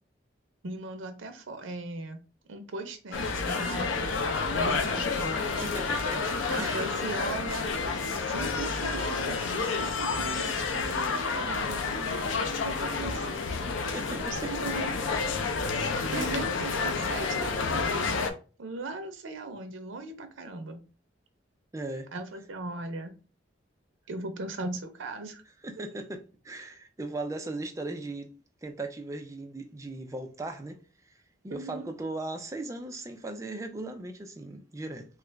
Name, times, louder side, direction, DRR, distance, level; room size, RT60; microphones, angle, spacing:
voice 1, 0.6-2.2 2.5-5.7 6.5-7.7 8.2-12.3 12.6-13.4 14.1-15.3 15.7-18.0 18.6-20.8 22.1-23.1 24.1-25.4 31.5-31.9, right 2 dB, 85° right, 0.6 m, -38 dB
sound 1, 3.1-18.3, left 4 dB, 85° left, 0.5 m, -30 dB
voice 2, 5.6-6.3 6.6-6.8 13.8-14.5 16.1-16.3 21.7-22.1 25.6-28.3 28.6-30.8 31.4-35.1, right 2 dB, 15° right, 0.4 m, -37 dB
2.8 x 2.4 x 3.3 m
head